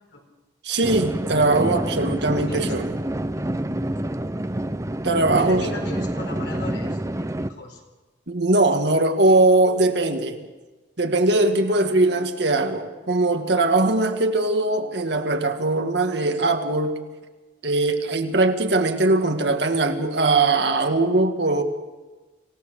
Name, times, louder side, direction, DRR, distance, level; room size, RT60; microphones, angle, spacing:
voice 1, 0.6-3.0 5.0-5.7 8.3-10.5 11.0-17.0 17.6-21.6, right 2 dB, 65° right, 6 dB, 1.7 m, -20 dB
sound 1, 0.8-7.5, right 1 dB, 15° right, 0.7 m, -27 dB
voice 2, 2.5-2.8 3.4-3.5 5.4-7.0 7.5-7.8, left 1 dB, 75° left, 2 dB, 4.5 m, -35 dB
26.5 x 16.5 x 6.6 m, 1.2 s
head